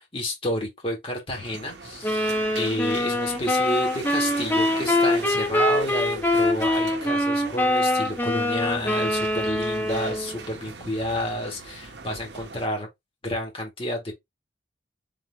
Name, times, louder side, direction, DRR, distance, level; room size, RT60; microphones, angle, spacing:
voice 1, 0.0-12.9 13.2-14.1, left 1 dB, 30° left, 1.8 m, -30 dB
sound 1, 1.3-12.7, right 4 dB, 65° right, 0.8 m, -40 dB
sound 2, 2.0-10.4, left 1 dB, 10° left, 0.9 m, -24 dB
4.0 x 3.1 x 3.4 m
head